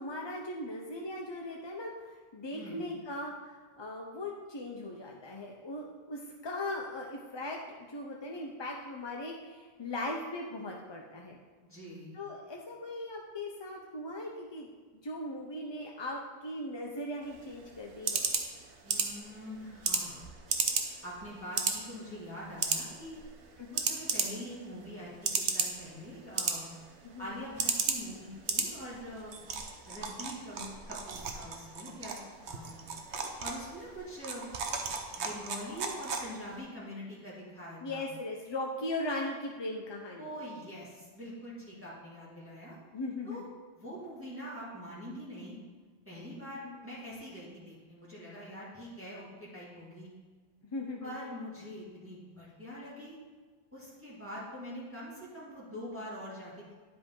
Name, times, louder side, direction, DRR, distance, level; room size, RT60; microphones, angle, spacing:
voice 1, 0.0-1.9 2.3-11.4 12.1-14.7 15.0-18.2 23.6-23.8 27.0-27.3 37.8-40.3 42.9-43.5 46.6-46.8 50.7-51.2, left 1 dB, 35° left, 0 dB, 0.5 m, -39 dB
voice 2, 2.5-2.9 11.6-12.2 18.8-20.2 21.0-23.2 23.7-26.7 27.2-29.4 29.9-32.2 32.4-32.9 33.4-34.4 35.2-38.1 40.2-42.8 43.3-43.4 43.8-45.6 46.1-50.1 51.0-53.2 53.7-56.7, equal, 10° right, -8 dB, 1.9 m, -44 dB
sound 1, 17.2-36.6, right 5 dB, 80° right, 1.1 m, -36 dB
10.0 x 5.1 x 3.7 m, 1.5 s
omnidirectional pair, 1.1 m